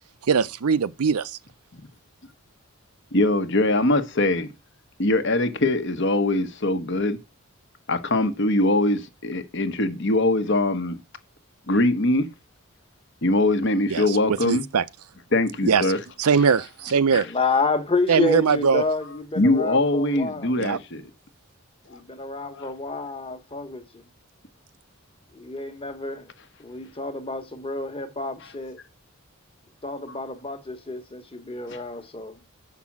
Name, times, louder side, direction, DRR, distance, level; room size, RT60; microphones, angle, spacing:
voice 1, 0.3-1.4 13.9-14.8 15.6-15.9 16.2-17.3 18.1-18.8 20.6-20.8, right 6 dB, 90° right, 0.6 m, -21 dB
voice 2, 3.1-4.5 5.0-7.2 7.9-11.0 11.7-12.3 13.2-14.6 15.3-16.0 17.1-17.2 19.4-21.1 22.4-22.7, left 2 dB, 55° left, 1.1 m, -22 dB
voice 3, 17.2-20.5 21.9-24.0 25.3-26.3 26.6-28.8 29.8-32.4, left 3 dB, 25° left, 1.2 m, -29 dB
7.3 x 6.0 x 7.2 m
head